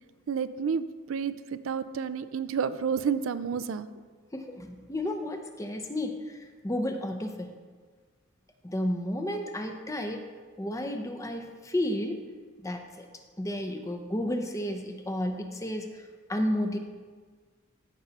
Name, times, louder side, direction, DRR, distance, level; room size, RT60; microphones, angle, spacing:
voice 1, 0.3-3.9, right 6 dB, 75° right, 13 dB, 0.4 m, -30 dB
voice 2, 4.3-7.5 8.6-10.3 10.6-12.2 12.6-13.1 13.4-16.8, left 1 dB, 15° left, 5 dB, 0.6 m, -32 dB
14.5 x 5.5 x 4.1 m, 1.5 s
head